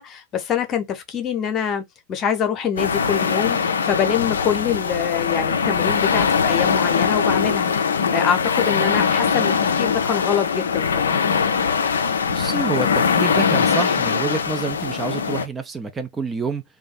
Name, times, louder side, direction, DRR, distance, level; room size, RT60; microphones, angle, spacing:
voice 1, 0.0-7.7 8.1-11.2, left 8 dB, 30° left, 0.7 m, -25 dB
sound 1, 2.8-15.4, left 6 dB, 70° left, 0.4 m, -21 dB
voice 2, 12.3-16.6, right 4 dB, 15° right, 0.4 m, -27 dB
2.6 x 2.3 x 3.9 m
figure-of-eight pair, 90°, 0 cm